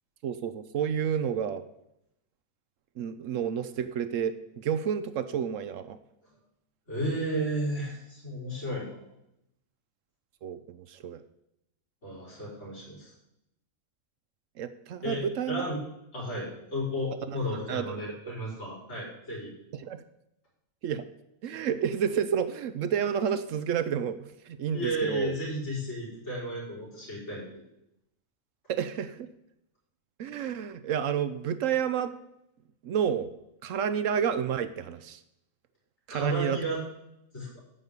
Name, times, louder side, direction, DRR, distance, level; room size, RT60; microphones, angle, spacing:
voice 1, 0.2-1.6 3.0-6.0 10.4-11.2 14.6-15.7 17.3-18.0 19.7-20.0 20.8-21.0 21.4-25.4 28.7-29.3 30.2-32.1 32.8-33.3 33.6-35.2 36.1-36.6, right 8 dB, 70° right, 12 dB, 0.9 m, -30 dB
voice 2, 6.9-8.9 12.0-13.1 15.0-15.8 16.1-19.5 24.7-27.4 36.1-36.8 37.3-37.5, equal, 55° left, -5 dB, 4.7 m, -33 dB
9.2 x 5.4 x 8.1 m, 0.82 s
omnidirectional pair, 1.4 m